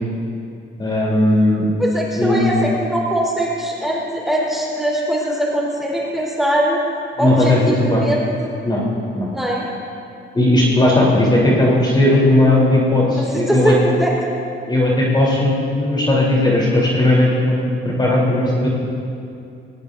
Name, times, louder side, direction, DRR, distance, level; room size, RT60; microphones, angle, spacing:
voice 1, 0.8-1.6 2.1-2.6 7.2-8.0 8.6-8.8 9.1-9.3 10.3-13.7 14.7-17.6 17.8-18.7, left 1 dB, 20° left, -5 dB, 3.8 m, -16 dB
voice 2, 1.8-6.8 7.2-8.5 9.3-9.7 13.1-14.1, right 1 dB, ahead, -4 dB, 4.4 m, -21 dB
20.5 x 19.0 x 2.7 m, 2.6 s
cardioid pair, 90°, 20 cm